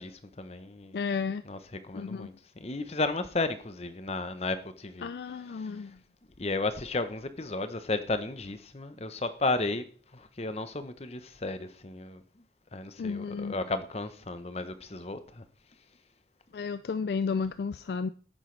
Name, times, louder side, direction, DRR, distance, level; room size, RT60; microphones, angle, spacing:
voice 1, 0.0-1.0 1.5-1.6 1.8-5.1 5.6-5.8 6.4-9.8 10.1-12.2 12.7-15.4, left 3 dB, 35° left, 0.8 m, -33 dB
voice 2, 0.9-1.4 1.9-2.4 5.0-6.0 13.0-13.6 16.5-18.1, left 5 dB, 60° left, 0.3 m, -32 dB
10.5 x 8.8 x 3.2 m
head